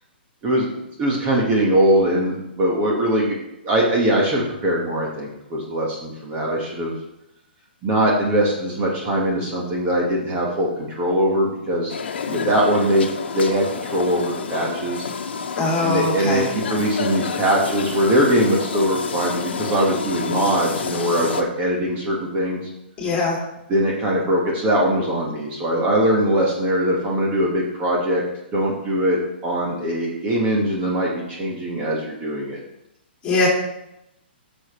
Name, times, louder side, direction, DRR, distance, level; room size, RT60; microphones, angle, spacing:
voice 1, 1.0-3.4 3.6-6.9 7.8-11.9 12.3-13.1 13.3-15.1 15.8-22.6 23.7-28.2 28.5-32.6, right 1 dB, 25° right, -2 dB, 1.7 m, -21 dB
sound 1, 11.9-21.4, left 6 dB, 75° left, 1.1 m, -29 dB
voice 2, 15.6-16.5 23.0-23.4 33.2-33.5, left 3 dB, 15° left, -3 dB, 2.7 m, -21 dB
13.0 x 6.6 x 3.3 m, 0.85 s
hypercardioid pair, 150°, 6 cm